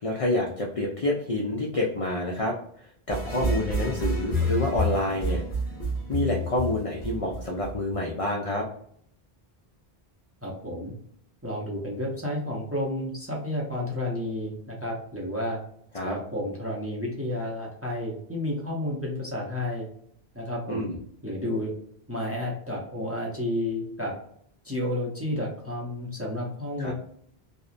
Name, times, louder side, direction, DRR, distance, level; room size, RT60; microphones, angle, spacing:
voice 1, 0.0-5.4 6.1-8.7 15.9-16.2 20.7-21.0 26.8-26.9, left 1 dB, 60° left, -1 dB, 0.3 m, -28 dB
sound 1, 3.1-8.1, left 1 dB, 20° left, 0.9 m, -29 dB
voice 2, 10.4-10.9 11.4-15.6 16.0-19.9 20.3-20.8 21.2-21.7 22.1-24.1 24.6-26.9, left 1 dB, 20° right, -3 dB, 0.4 m, -31 dB
2.7 x 2.0 x 2.4 m, 0.66 s
omnidirectional pair, 1.1 m